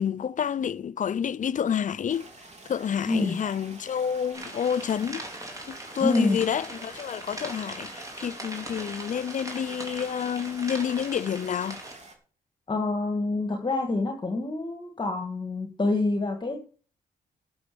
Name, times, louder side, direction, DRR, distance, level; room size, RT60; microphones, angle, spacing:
voice 1, 0.0-2.3 2.6-5.2 5.7-11.8, left 8 dB, 50° left, 0.5 m, -29 dB
sound 1, 2.1-12.1, right 2 dB, 45° right, 3.6 m, -48 dB
sound 2, 4.3-11.9, right 1 dB, 20° right, 4.3 m, -40 dB
voice 2, 6.0-6.4 12.7-16.6, left 2 dB, 30° left, 2.0 m, -27 dB
12.0 x 7.0 x 7.0 m
cardioid pair, 75°, 16 cm